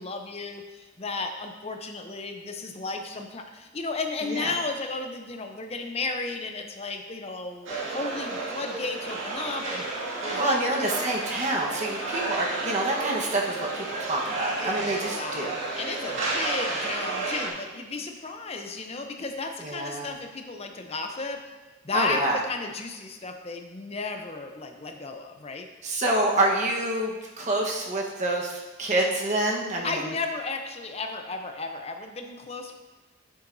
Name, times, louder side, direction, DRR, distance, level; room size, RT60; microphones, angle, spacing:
voice 1, 0.0-9.8 10.2-10.7 14.6-21.4 21.8-25.7 29.8-32.7, left 3 dB, 30° left, 4 dB, 0.7 m, -34 dB
sound 1, 7.7-17.5, right 3 dB, 80° right, 1.9 m, -32 dB
voice 2, 10.4-15.5 19.6-20.1 21.9-22.4 25.8-30.1, right 2 dB, 40° right, -2 dB, 1.2 m, -27 dB
9.6 x 7.5 x 2.7 m, 1.2 s
head